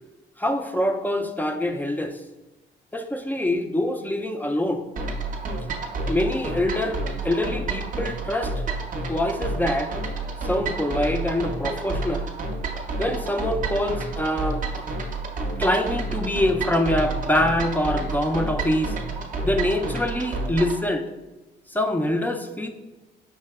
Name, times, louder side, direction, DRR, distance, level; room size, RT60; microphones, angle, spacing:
voice 1, 0.4-2.2 2.9-4.8 6.1-8.6 9.1-9.9 10.4-12.3 13.0-14.6 15.6-19.0 19.4-21.1 21.7-22.7, left 1 dB, 10° left, 5 dB, 0.3 m, -25 dB
sound 1, 5.0-20.8, right 3 dB, 40° right, 0.6 m, -30 dB
5.6 x 2.7 x 2.3 m, 1.1 s
cardioid pair, 90°, 20 cm